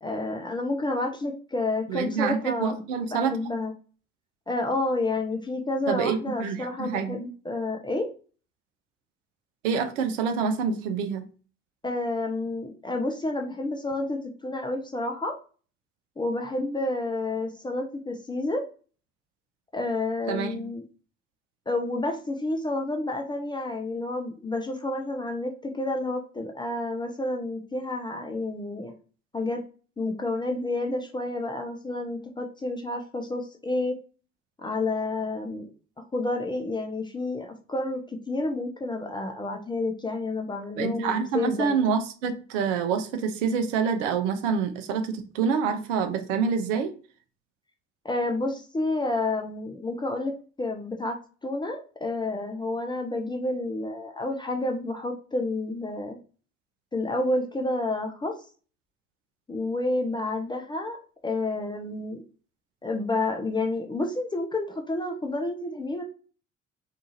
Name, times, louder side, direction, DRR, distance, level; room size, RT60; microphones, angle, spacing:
voice 1, 0.0-2.8 3.1-3.7 4.5-8.1 11.8-15.4 16.2-18.6 19.7-20.9 21.7-28.9 29.3-29.6 30.0-34.0 34.6-35.7 36.1-41.9 48.0-50.3 50.6-51.2 51.4-56.2 56.9-58.3 59.5-61.0 61.2-62.2 62.8-66.0, left 2 dB, 15° left, 3 dB, 0.3 m, -30 dB
voice 2, 1.9-3.4 5.9-7.2 9.6-11.2 20.3-20.6 40.8-46.9, right 6 dB, 70° right, 7 dB, 0.5 m, -27 dB
2.7 x 2.4 x 2.6 m, 0.38 s
figure-of-eight pair, 50°, 38 cm